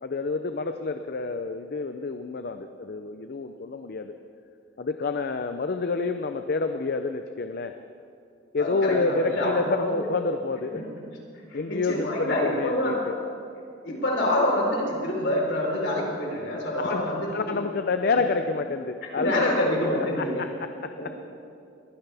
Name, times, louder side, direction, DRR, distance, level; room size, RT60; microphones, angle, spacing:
voice 1, 0.0-4.2 4.8-7.7 8.5-10.8 11.5-13.1 16.9-19.5 20.1-21.2, left 4 dB, 55° left, 8 dB, 0.5 m, -28 dB
voice 2, 8.6-10.1 10.7-10.9 11.5-13.0 13.8-17.6 18.1-18.2 19.2-20.4 21.0-21.2, left 1 dB, 70° left, -2 dB, 4.1 m, -27 dB
22.0 x 16.0 x 3.5 m, 2.6 s
head